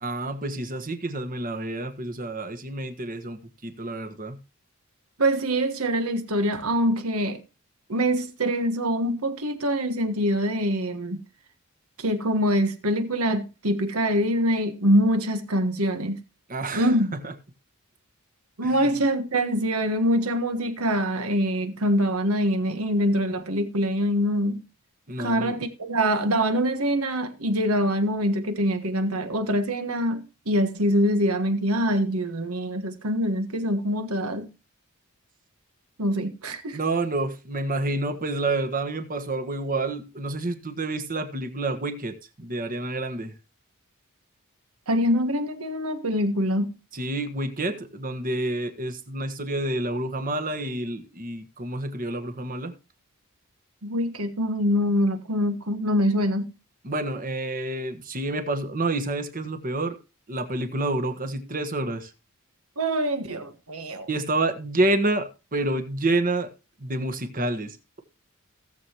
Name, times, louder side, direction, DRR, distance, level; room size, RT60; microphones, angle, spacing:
voice 1, 0.0-4.4 16.5-16.9 17.2-17.3 18.6-18.9 25.1-25.6 36.7-43.3 46.9-52.7 56.8-60.0 60.3-62.1 64.1-66.5 66.8-68.0, right 2 dB, 40° right, 1.4 m, -28 dB
voice 2, 5.2-7.4 7.9-11.2 12.0-16.2 16.7-17.1 18.6-24.6 25.2-34.5 36.0-36.8 44.9-46.7 53.8-56.5 62.8-64.1, equal, 80° right, 1.5 m, -24 dB
17.5 x 7.1 x 3.0 m
head